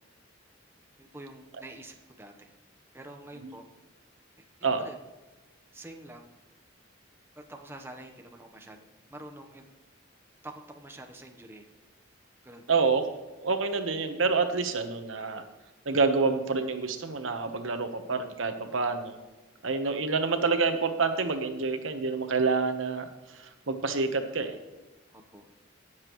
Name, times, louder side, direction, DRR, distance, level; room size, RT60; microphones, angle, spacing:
voice 1, 1.0-2.5 2.9-3.6 4.6-5.0 5.7-6.3 7.4-9.6 10.4-11.7 12.4-12.6 25.1-25.5, right 1 dB, 10° right, 3 dB, 0.9 m, -47 dB
voice 2, 12.7-13.0 13.4-15.4 15.8-19.2 19.6-24.6, right 4 dB, 85° right, 7 dB, 1.1 m, -28 dB
18.0 x 7.4 x 3.1 m, 1.2 s
head